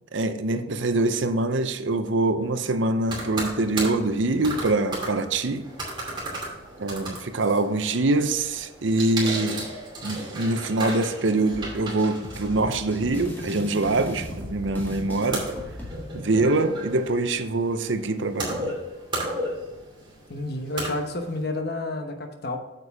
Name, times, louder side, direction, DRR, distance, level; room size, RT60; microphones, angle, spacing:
voice 1, 0.1-5.6 6.8-9.7 10.0-15.5 16.1-18.8, right 2 dB, 65° right, 0.7 m, -24 dB
sound 1, 3.0-21.4, right 1 dB, 25° right, 2.6 m, -35 dB
sound 2, 11.5-15.9, left 1 dB, 10° left, 1.9 m, -36 dB
voice 2, 20.3-22.6, left 2 dB, 55° left, 1.0 m, -30 dB
8.3 x 6.7 x 3.5 m
head